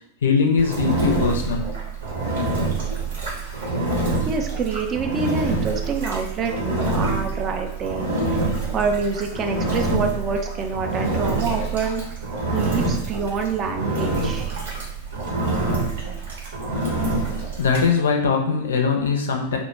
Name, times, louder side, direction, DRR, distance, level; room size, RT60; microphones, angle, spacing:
voice 1, 0.2-1.6 2.6-2.7 17.3-19.6, left 5 dB, 65° left, 3 dB, 0.4 m, -21 dB
Engine, 0.6-17.9, right 2 dB, 65° right, 0.8 m, -26 dB
voice 2, 4.2-8.4 8.7-12.0 12.5-14.6, right 4 dB, 30° right, 3 dB, 0.3 m, -26 dB
2.1 x 2.1 x 3.1 m, 0.74 s
figure-of-eight pair, 90°, 0 cm